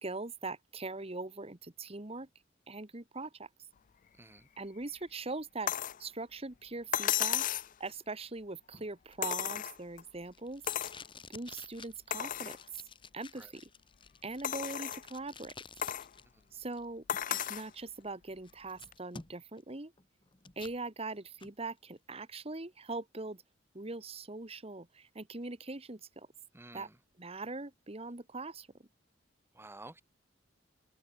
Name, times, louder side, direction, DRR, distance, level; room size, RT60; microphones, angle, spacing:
voice 1, 0.0-2.3 2.7-3.5 4.6-5.7 6.0-7.5 7.8-10.6 11.3-12.6 13.1-13.7 14.2-15.5 16.5-19.9 20.5-23.4 23.7-26.3 26.7-26.9 27.2-28.7, right 3 dB, 30° right, 1.5 m, -41 dB
voice 2, 4.1-4.5 13.3-13.5 16.3-16.4 26.5-27.0 29.5-30.0, right 2 dB, 15° right, 1.4 m, -51 dB
sound 1, 5.7-6.0 6.9-7.7 9.2-10.0 10.7-11.0 11.5-11.6 12.1-12.6 13.2-13.3 14.4-15.1 15.8-16.1 17.1-17.7 18.9-19.0, left 11 dB, 45° left, 0.4 m, -34 dB
Packing tape duct tape, 8.7-16.2 16.5-17.5 18.0-18.1 18.4-19.6 20.0-20.8 21.2-21.5, left 4 dB, 25° left, 2.0 m, -52 dB
head